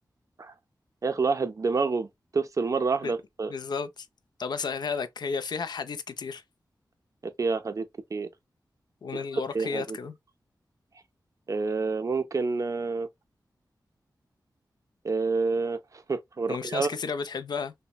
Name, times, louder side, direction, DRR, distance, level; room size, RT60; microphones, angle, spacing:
voice 1, 1.0-2.1 2.3-3.5 7.2-8.3 9.1-9.2 9.5-10.0 11.5-13.1 15.0-16.9, right 4 dB, 45° right, 0.4 m, -28 dB
voice 2, 3.5-4.1 4.4-6.4 9.0-10.1 16.5-17.7, left 5 dB, 70° left, 0.4 m, -32 dB
2.9 x 2.0 x 2.2 m
wide cardioid pair, 75°, 8 cm